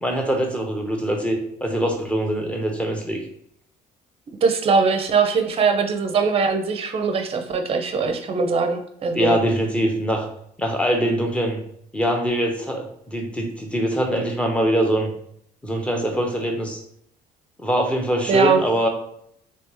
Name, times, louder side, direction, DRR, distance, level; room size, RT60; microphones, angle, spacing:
voice 1, 0.0-3.2 9.1-10.3 10.6-11.6 11.9-15.1 15.6-16.8 17.6-18.9, equal, 5° left, 2 dB, 0.8 m, -23 dB
voice 2, 4.4-9.3 18.3-18.6, right 5 dB, 35° right, 6 dB, 0.6 m, -21 dB
3.4 x 2.8 x 2.9 m, 0.69 s
cardioid pair, 110°, 17 cm